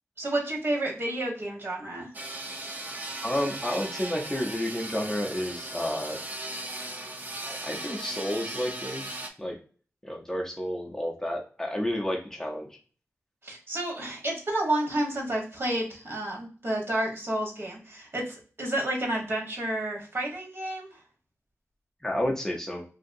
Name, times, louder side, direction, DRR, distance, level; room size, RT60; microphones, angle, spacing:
voice 1, 0.2-2.1 13.4-21.0, right 1 dB, 50° right, -1 dB, 1.1 m, -30 dB
sound 1, 2.1-9.3, right 1 dB, 35° right, 0.5 m, -37 dB
voice 2, 3.2-6.2 7.4-9.6 10.0-12.8 22.0-22.8, left 1 dB, 10° left, 0 dB, 0.5 m, -31 dB
2.8 x 2.6 x 2.5 m, 0.40 s
wide cardioid pair, 95°, 5 cm